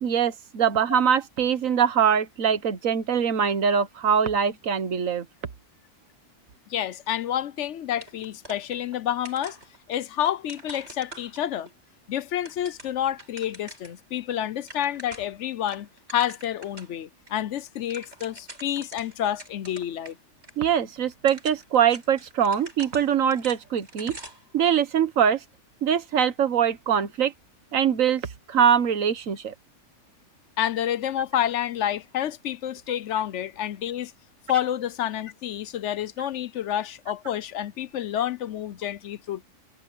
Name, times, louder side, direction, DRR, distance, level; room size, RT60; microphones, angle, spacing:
voice 1, 0.0-5.2 20.6-24.2 24.5-25.4 25.8-27.3 27.7-28.2 28.5-29.5, right 8 dB, 90° right, 1.5 m, -23 dB
voice 2, 6.7-9.6 9.9-11.7 12.1-20.2 30.6-34.1 34.5-39.4, left 11 dB, 70° left, 0.9 m, -29 dB
sound 1, 8.0-9.0 9.2-11.7 12.2-14.0 14.3-14.4 14.6-15.4 15.7-16.9 17.3-17.4 17.7-20.1 20.4-20.5 21.1-24.5, right 1 dB, 55° right, 7.1 m, -45 dB
omnidirectional pair, 1.3 m